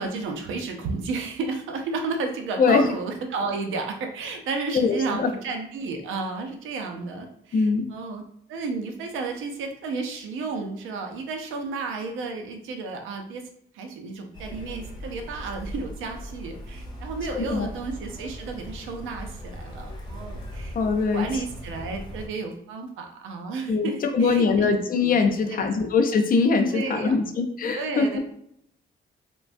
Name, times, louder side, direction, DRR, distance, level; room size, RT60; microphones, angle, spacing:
voice 1, 0.0-8.2 8.5-13.4 13.7-24.7 25.0-25.1 25.5-25.7 26.7-27.2 27.7-28.2, right 4 dB, 85° right, 4 dB, 0.5 m, -32 dB
voice 2, 4.7-5.3 7.5-7.9 17.3-17.7 20.7-21.4 23.7-28.1, left 4 dB, 45° left, 5 dB, 0.5 m, -22 dB
sound 1, 14.3-22.3, equal, 20° left, 0.8 m, -39 dB
3.2 x 2.2 x 2.5 m, 0.73 s
cardioid pair, 90°, 20 cm